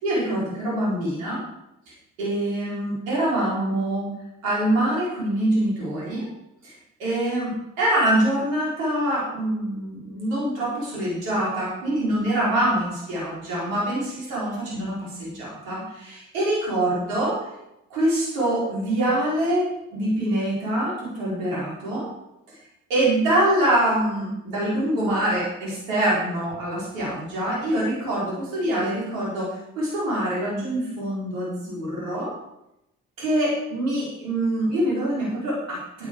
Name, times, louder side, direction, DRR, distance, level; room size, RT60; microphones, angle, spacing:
voice 1, 0.0-1.4 2.2-4.1 4.4-6.3 6.6-6.7 7.0-17.4 17.9-22.1 22.9-32.3 33.2-36.1, right 1 dB, 80° right, -6 dB, 5.7 m, -25 dB
11.5 x 10.5 x 5.1 m, 0.84 s
figure-of-eight pair, 45°, 40 cm